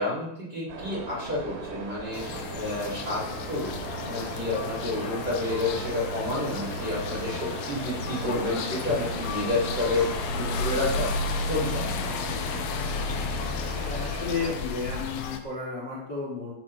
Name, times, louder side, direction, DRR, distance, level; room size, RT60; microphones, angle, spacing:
voice 1, 0.0-10.1 10.4-11.1 11.5-11.8, left 2 dB, 20° right, -6 dB, 4.2 m, -30 dB
sound 1, 0.7-14.5, right 4 dB, 70° right, 4.1 m, -38 dB
sound 2, 2.1-15.4, left 4 dB, 85° left, 2.1 m, -32 dB
voice 2, 13.7-16.5, left 4 dB, 25° left, -6 dB, 3.4 m, -33 dB
15.0 x 7.6 x 4.8 m, 0.79 s
omnidirectional pair, 5.7 m